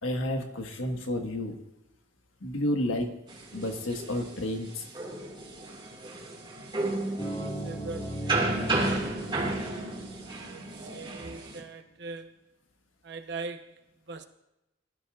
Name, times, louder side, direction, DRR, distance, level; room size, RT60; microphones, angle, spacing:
voice 1, 0.0-1.6 2.4-3.2 3.5-4.8, left 1 dB, 85° left, 1.5 m, -31 dB
sound 1, 3.3-11.6, right 2 dB, 25° right, 2.0 m, -33 dB
voice 2, 6.8-8.6 10.3-12.3 13.0-14.2, right 3 dB, 60° right, 0.9 m, -42 dB
sound 2, 7.2-10.8, right 1 dB, 30° left, 2.2 m, -38 dB
19.5 x 12.0 x 2.4 m
head